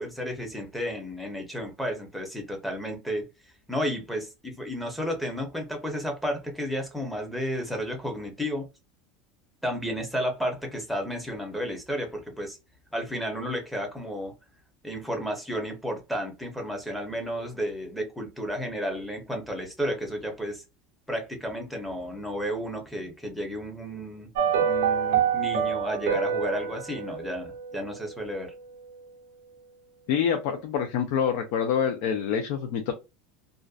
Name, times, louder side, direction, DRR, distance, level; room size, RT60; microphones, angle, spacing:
voice 1, 0.0-3.2 3.7-8.7 9.6-12.6 12.9-14.3 14.8-20.6 21.1-24.3 24.6-28.5, equal, ahead, 0.7 m, -32 dB
sound 1, 24.3-28.7 28.9-29.0, right 7 dB, 90° right, 0.5 m, -27 dB
voice 2, 30.1-32.9, left 7 dB, 65° left, 0.4 m, -26 dB
2.4 x 2.1 x 2.3 m
supercardioid pair, 145°, 0 cm